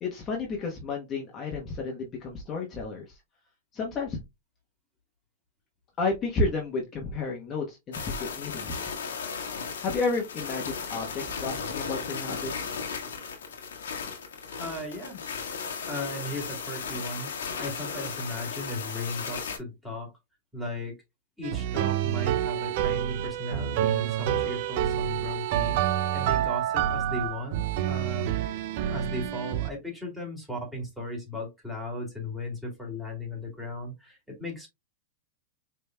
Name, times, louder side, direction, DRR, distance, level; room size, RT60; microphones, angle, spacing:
voice 1, 0.0-3.2 3.7-4.2 6.0-8.9 9.8-12.8, left 3 dB, 30° left, -1 dB, 1.0 m, -31 dB
sound 1, 7.9-19.6, left 6 dB, 85° left, 1.4 m, -36 dB
voice 2, 14.6-15.2 15.9-17.3 17.6-20.1 20.5-20.9 21.4-28.3 28.9-34.7, left 1 dB, 5° right, -1 dB, 2.3 m, -36 dB
sound 2, 21.4-29.7, right 11 dB, 55° right, 0.4 m, -28 dB
5.2 x 3.3 x 2.2 m, 0.21 s
hypercardioid pair, 125°, 0 cm